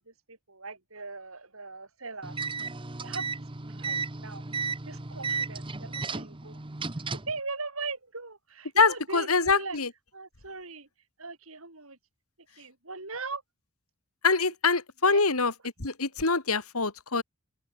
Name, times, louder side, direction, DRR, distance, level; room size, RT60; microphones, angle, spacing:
voice 1, 0.0-2.4 3.0-4.5 4.9-6.6 7.3-9.8 10.1-10.9 11.2-12.0 12.6-13.4 15.0-15.2, right 3 dB, 70° right, 6.7 m, -40 dB
sound 1, 2.2-7.4, right 4 dB, 25° right, 1.0 m, -34 dB
voice 2, 8.8-9.9 14.2-15.5 15.8-17.2, left 4 dB, 85° left, 3.0 m, -24 dB
head